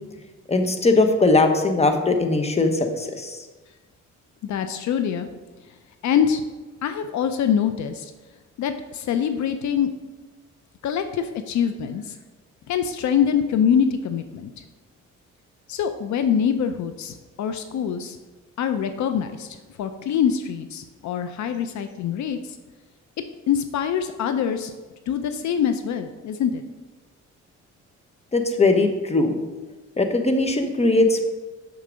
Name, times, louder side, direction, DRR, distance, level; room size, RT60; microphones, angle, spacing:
voice 1, 0.5-3.4 28.3-29.4 30.0-31.2, left 2 dB, 20° left, 6 dB, 1.0 m, -20 dB
voice 2, 4.4-5.3 6.0-6.4 6.8-8.1 8.6-9.9 10.8-12.2 12.7-14.6 15.7-18.2 18.6-22.6 23.5-24.7 25.1-26.6, left 8 dB, 70° left, 9 dB, 0.6 m, -24 dB
6.8 x 6.5 x 5.1 m, 1.3 s
cardioid pair, 90°, 30 cm